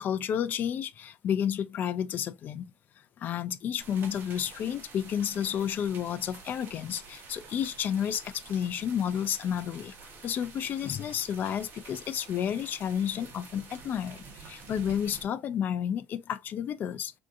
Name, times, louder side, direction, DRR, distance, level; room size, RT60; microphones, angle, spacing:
voice 1, 0.0-2.6 3.2-9.9 10.2-17.1, left 9 dB, 40° left, 0.3 m, -31 dB
sound 1, 3.8-15.3, right 4 dB, 40° right, 1.0 m, -49 dB
3.5 x 2.6 x 2.4 m
cardioid pair, 160°, 5 cm